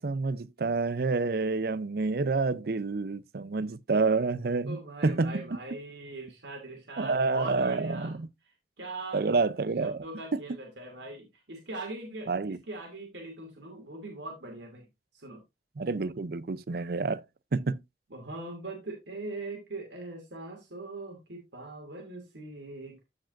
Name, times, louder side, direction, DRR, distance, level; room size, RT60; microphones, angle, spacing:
voice 1, 0.0-5.4 7.0-8.3 9.1-10.0 10.3-10.4 12.3-12.6 15.8-17.2 17.5-17.8, right 3 dB, 60° right, 0.5 m, -28 dB
voice 2, 4.7-8.2 8.4-9.3 9.8-14.8 15.1-15.4 18.1-23.0, right 2 dB, 85° right, 2.6 m, -41 dB
14.5 x 5.1 x 2.5 m
head